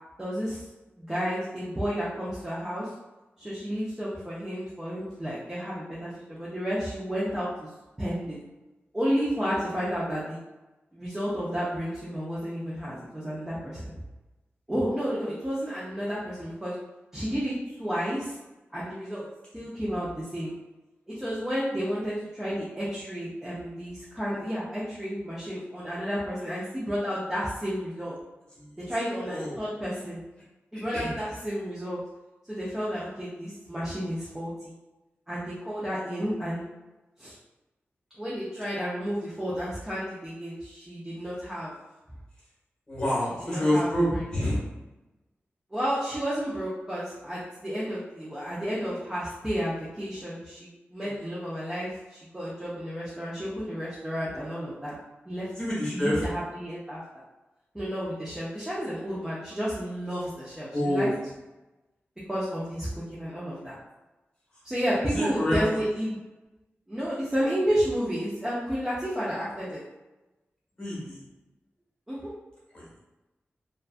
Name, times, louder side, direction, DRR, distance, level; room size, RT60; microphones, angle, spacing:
voice 1, 0.2-0.6 1.0-2.9 3.4-7.7 8.0-8.4 8.9-10.4 10.9-13.9 14.7-16.8 17.1-18.3 18.7-19.3 19.5-20.5 21.1-28.1 28.8-30.2 30.7-32.0 32.5-34.7 35.3-36.6 37.2-37.4 38.2-41.7 43.2-44.3 45.7-54.9 55.3-55.5 55.9-57.0 57.7-61.3 62.3-63.8 64.6-66.2 66.9-69.8 72.1-72.3, equal, 10° right, -9 dB, 0.5 m, -31 dB
voice 2, 29.3-29.6 30.7-31.1 42.9-44.6 51.2-51.3 55.5-56.2 60.7-61.1 65.1-65.8 70.8-71.2 72.7-73.0, equal, 20° left, -7 dB, 1.1 m, -28 dB
2.5 x 2.2 x 2.4 m, 1.1 s
wide cardioid pair, 130°, 4 cm